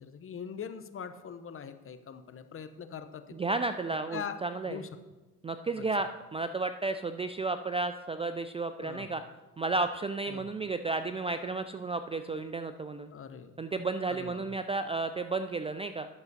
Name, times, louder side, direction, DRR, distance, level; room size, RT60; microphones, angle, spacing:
voice 1, 0.0-3.4 4.1-4.9 5.8-5.9 8.8-9.2 10.3-10.5 13.1-13.6 14.1-14.5, left 7 dB, 35° left, 10 dB, 0.8 m, -42 dB
voice 2, 3.3-4.8 5.4-9.2 9.6-13.1 13.6-16.1, right 3 dB, 15° right, 9 dB, 0.4 m, -33 dB
11.0 x 6.7 x 4.1 m, 1.1 s
supercardioid pair, 85°, 37 cm